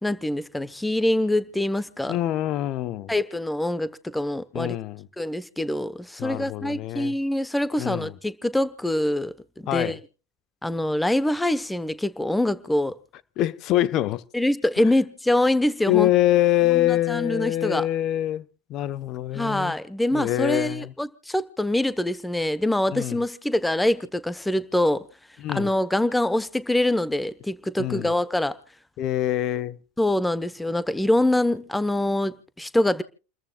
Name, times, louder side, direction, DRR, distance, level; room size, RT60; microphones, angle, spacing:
voice 1, 0.0-2.2 3.1-4.8 5.2-10.0 10.6-13.0 14.3-16.1 16.7-17.9 19.3-25.0 25.5-28.5 30.0-33.0, left 1 dB, 5° left, 1.0 m, -24 dB
voice 2, 2.1-3.1 4.5-5.1 6.2-7.1 7.8-8.1 9.7-10.0 13.4-14.2 15.9-18.4 18.7-19.7 20.1-20.9 22.9-23.2 25.4-25.7 27.8-28.1 29.0-29.8, left 14 dB, 50° left, 0.9 m, -24 dB
30.0 x 14.0 x 2.3 m
hypercardioid pair, 90°, 0 cm